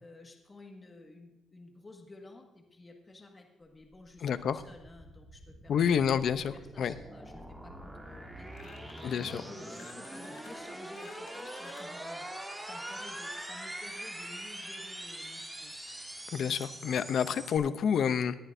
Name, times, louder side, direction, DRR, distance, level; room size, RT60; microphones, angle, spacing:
voice 1, 0.0-12.3 12.6-16.0, left 2 dB, 25° left, 2 dB, 1.7 m, -52 dB
sound 1, 3.9-17.6, right 1 dB, 10° right, 2.4 m, -43 dB
voice 2, 4.2-4.6 5.7-6.9 9.0-9.4 16.3-18.3, left 7 dB, 65° left, 13 dB, 0.6 m, -29 dB
sound 2, 8.5-9.5 9.7-12.0, left 8 dB, 90° left, 1.2 m, -55 dB
18.5 x 11.0 x 2.7 m, 0.98 s
cardioid pair, 90°, 0 cm